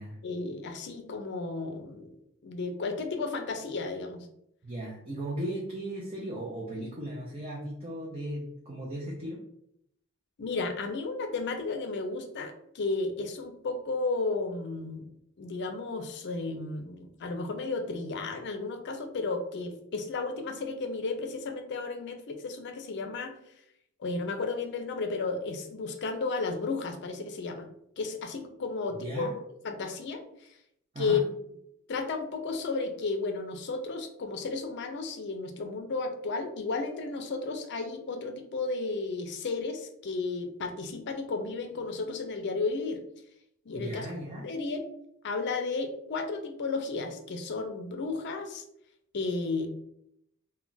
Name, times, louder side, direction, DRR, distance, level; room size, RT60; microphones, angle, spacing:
voice 1, 0.2-2.2 2.4-4.3 10.4-15.1 15.4-23.3 24.0-27.7 28.0-30.5 31.0-31.3 31.9-43.0 43.7-44.1 44.4-44.9 45.2-48.6 49.1-49.7, left 3 dB, 50° left, 6 dB, 0.4 m, -33 dB
voice 2, 4.6-9.4 29.0-29.4 30.9-31.2 43.7-44.5, right 1 dB, 25° right, -4 dB, 0.5 m, -36 dB
2.3 x 2.2 x 3.8 m, 0.75 s
head